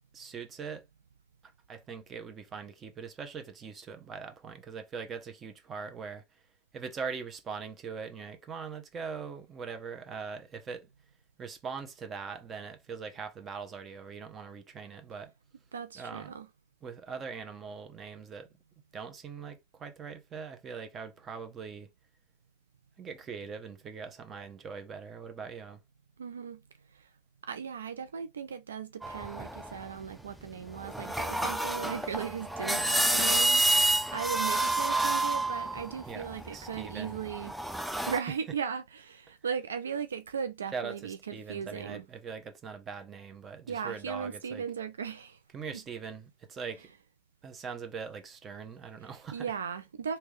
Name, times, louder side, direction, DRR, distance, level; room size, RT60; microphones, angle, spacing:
voice 1, 0.1-0.8 1.7-6.2 6.7-10.9 11.4-15.3 15.9-16.3 16.8-18.5 18.9-21.9 23.0-25.8 36.1-37.2 38.1-38.2 40.7-44.6 45.5-46.9 47.4-49.5, right 5 dB, 30° right, 0.9 m, -41 dB
voice 2, 15.7-16.5 26.2-26.6 27.5-33.6 34.1-37.6 38.1-42.0 43.7-45.4 49.0-50.2, right 7 dB, 85° right, 0.3 m, -37 dB
sound 1, 29.0-30.0 30.7-38.2, right 1 dB, 5° right, 0.5 m, -29 dB
3.4 x 2.8 x 3.2 m
hypercardioid pair, 90°, 0 cm